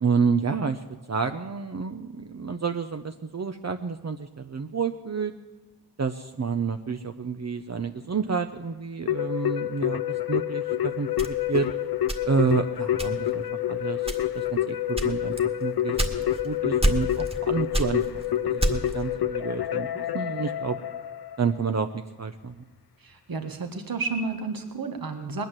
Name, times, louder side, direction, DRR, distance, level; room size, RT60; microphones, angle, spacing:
voice 1, 0.0-5.3 6.0-11.7 12.2-15.3 15.6-20.8 21.4-22.6, right 5 dB, 45° right, 6 dB, 0.8 m, -29 dB
Keyboard (musical), 9.1-21.5, left 12 dB, 75° left, 0.7 m, -28 dB
sound 1, 11.2-12.6 13.0-13.4 14.0-14.5 15.0-16.5 16.8-17.4 17.7-19.0, right 1 dB, 15° right, 1.8 m, -27 dB
voice 2, 23.0-25.4, right 4 dB, 65° right, 5 dB, 1.7 m, -31 dB
20.0 x 9.4 x 7.6 m, 1.1 s
cardioid pair, 55°, 38 cm